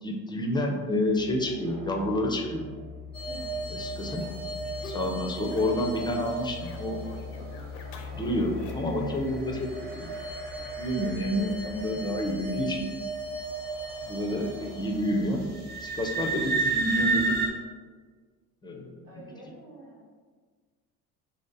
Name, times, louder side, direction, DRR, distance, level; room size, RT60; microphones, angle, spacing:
voice 1, 0.0-2.7 3.7-4.3 4.8-7.0 8.1-10.1 10.7-12.9 14.0-15.4 15.8-17.3 18.6-19.2, left 1 dB, 10° left, 1 dB, 0.4 m, -29 dB
sound 1, 1.1-17.4, left 4 dB, 60° right, 0.8 m, -43 dB
sound 2, 3.1-7.5 8.1-17.5, right 3 dB, 20° right, 0.8 m, -34 dB
sound 3, 3.3-6.0 6.2-9.0, left 3 dB, 80° left, 0.6 m, -48 dB
voice 2, 3.3-3.6 4.0-4.3 19.0-20.2, equal, 90° right, -5 dB, 1.2 m, -48 dB
3.0 x 2.6 x 3.9 m, 1.5 s
hypercardioid pair, 65°, 47 cm